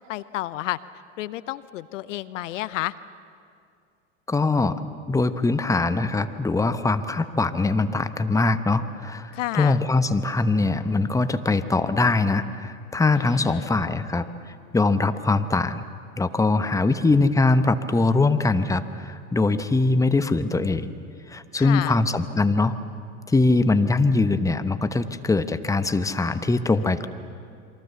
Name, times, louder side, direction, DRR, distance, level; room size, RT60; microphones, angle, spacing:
voice 1, 0.1-0.8 1.2-2.9 9.3-9.8 13.2-13.7 21.5-22.0, left 15 dB, 70° left, 16 dB, 0.8 m, -31 dB
voice 2, 4.3-4.8 5.1-14.3 14.7-15.8 16.2-20.9 21.3-22.8 23.3-27.1, left 3 dB, 10° left, 11 dB, 1.1 m, -22 dB
28.0 x 23.5 x 7.1 m, 2.3 s
hypercardioid pair, 85°, 38 cm